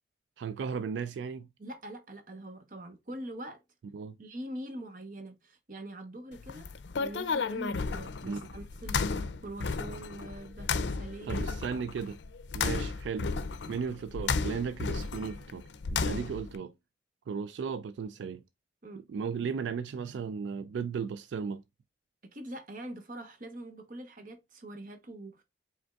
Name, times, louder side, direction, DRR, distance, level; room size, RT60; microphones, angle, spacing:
voice 1, 0.4-1.5 3.9-4.2 8.2-8.4 11.2-12.2 12.5-13.3 13.7-15.6 15.9-16.7 17.3-18.4 19.1-21.6, right 6 dB, 80° right, 0.3 m, -35 dB
voice 2, 1.6-3.6 4.2-11.5 16.1-16.3 18.8-19.0 22.3-25.4, right 1 dB, 50° right, 0.9 m, -44 dB
sound 1, 6.3-16.5, left 4 dB, 80° left, 0.5 m, -33 dB
5.1 x 3.4 x 2.3 m
head